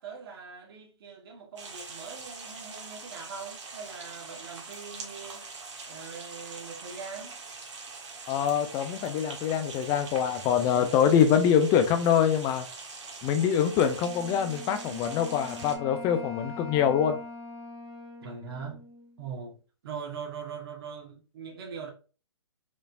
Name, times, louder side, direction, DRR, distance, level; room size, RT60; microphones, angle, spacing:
voice 1, 0.0-5.4 5.9-7.4 18.2-18.8 19.2-19.6 19.8-21.9, right 6 dB, 50° right, 1.5 m, -41 dB
sound 1, 1.6-15.8, right 4 dB, 70° right, 1.6 m, -43 dB
voice 2, 8.3-12.7 13.2-17.2, left 8 dB, 20° left, 0.6 m, -24 dB
Wind instrument woodwind instrument, 14.0-19.5, left 2 dB, 20° right, 1.7 m, -43 dB
5.2 x 3.1 x 2.6 m
hypercardioid pair, 140°, 15 cm